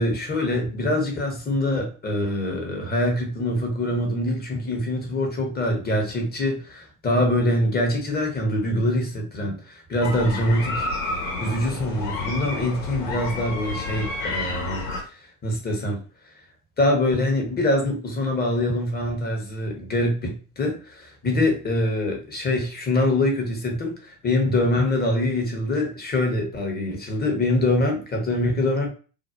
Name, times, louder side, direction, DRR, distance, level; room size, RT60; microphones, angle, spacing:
voice 1, 0.0-10.9 11.4-14.8 15.4-16.0 16.8-28.9, left 1 dB, 20° left, 2 dB, 0.7 m, -24 dB
sound 1, 10.0-15.0, left 3 dB, 85° left, 1.0 m, -30 dB
2.6 x 2.0 x 2.3 m, 0.37 s
hypercardioid pair, 75°, 47 cm